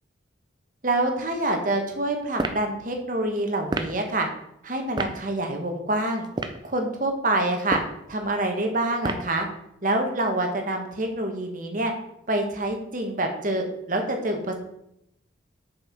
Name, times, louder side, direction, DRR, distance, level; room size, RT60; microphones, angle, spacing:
voice 1, 0.8-4.3 4.6-6.3 6.6-7.8 8.1-9.5 9.8-11.9 12.3-14.6, right 1 dB, 45° right, 3 dB, 1.3 m, -26 dB
sound 1, 2.3-2.6 3.7-4.0 5.0-5.2 6.2-6.6 7.6-8.0 9.0-9.4, right 2 dB, 25° right, 0.6 m, -29 dB
6.6 x 5.6 x 5.8 m, 0.78 s
head